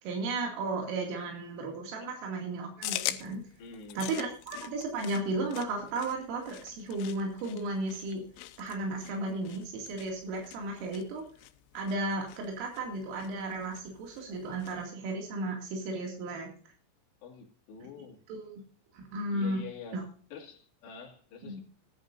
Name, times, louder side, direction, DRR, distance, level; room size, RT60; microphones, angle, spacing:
voice 1, 0.0-3.4 4.0-8.2 8.6-11.2 11.7-16.5 18.3-18.6 18.9-19.6 19.9-20.0 21.5-21.6, right 2 dB, 90° right, 5.1 m, -34 dB
sound 1, 2.8-14.8, left 15 dB, 85° left, 3.3 m, -43 dB
voice 2, 3.6-4.1 17.2-18.2 19.3-21.6, left 5 dB, 60° left, 4.4 m, -47 dB
19.0 x 11.0 x 2.6 m
omnidirectional pair, 5.6 m